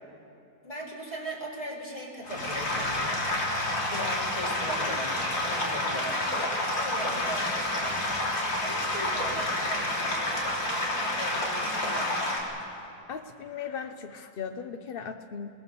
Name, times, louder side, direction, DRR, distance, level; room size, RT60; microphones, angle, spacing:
voice 1, 0.6-6.2 6.8-8.0 8.6-12.1, right 1 dB, 15° left, -1 dB, 4.1 m, -39 dB
sound 1, 2.2-12.4, left 1 dB, 85° left, 4.0 m, -29 dB
voice 2, 12.7-15.5, left 6 dB, 65° left, 8 dB, 0.5 m, -38 dB
26.5 x 19.5 x 6.9 m, 2.8 s
omnidirectional pair, 2.0 m